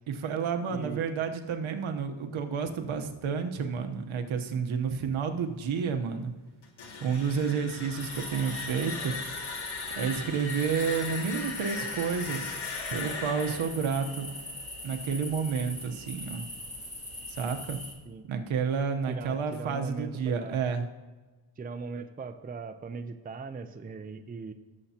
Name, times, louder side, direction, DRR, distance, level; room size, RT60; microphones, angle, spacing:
voice 1, 0.1-6.3 7.0-9.1 10.0-12.6 12.9-14.4 14.8-16.4 17.3-17.8 18.2-20.8, right 6 dB, 75° right, 6 dB, 1.1 m, -30 dB
voice 2, 0.7-1.1 18.1-18.3 19.1-20.6 21.6-24.5, right 4 dB, 20° right, 8 dB, 0.5 m, -39 dB
sound 1, 6.6-15.4, left 4 dB, 90° left, 2.0 m, -39 dB
sound 2, 8.0-17.9, left 1 dB, 15° left, 2.2 m, -42 dB
17.5 x 7.3 x 2.9 m, 1.3 s
wide cardioid pair, 135°, 47 cm